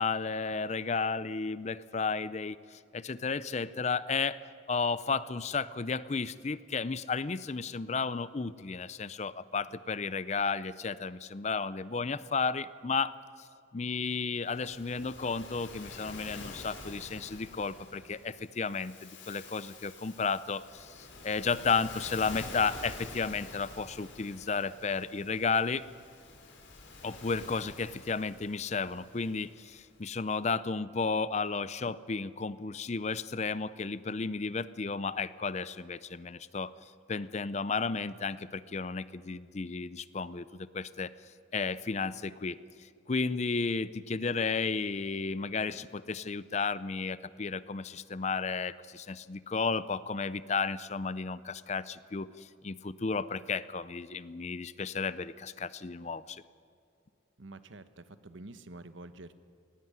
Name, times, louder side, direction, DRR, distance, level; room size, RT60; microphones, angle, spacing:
voice 1, 0.0-4.4 4.7-13.1 13.7-25.8 27.0-36.7 37.1-41.1 41.5-42.6 43.1-56.4, left 4 dB, 35° left, 16 dB, 0.5 m, -33 dB
Waves surf, 14.4-29.9, left 3 dB, 70° left, 3.9 m, -48 dB
voice 2, 57.4-59.3, right 2 dB, 75° right, 12 dB, 1.1 m, -48 dB
18.5 x 16.0 x 9.5 m, 2.2 s
head